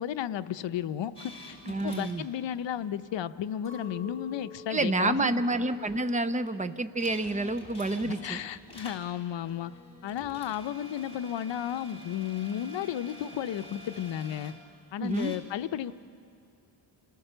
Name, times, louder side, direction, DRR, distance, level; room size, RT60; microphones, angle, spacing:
voice 1, 0.0-1.4 1.6-5.4 8.0-9.7 10.0-14.5 14.9-15.9, left 10 dB, 70° left, 11 dB, 0.7 m, -33 dB
sound 1, 1.1-2.2 5.0-5.1 5.5-5.6 7.0-9.1 9.5-14.6 15.0-15.4, left 1 dB, 10° left, 3.3 m, -48 dB
voice 2, 1.7-2.2 4.7-8.4 15.0-15.3, right 2 dB, 15° right, 11 dB, 0.6 m, -28 dB
Chink clink, 3.6-8.0 8.3-9.1, left 3 dB, 35° right, 2.2 m, -50 dB
27.5 x 17.5 x 6.8 m, 2.6 s
wide cardioid pair, 155°, 46 cm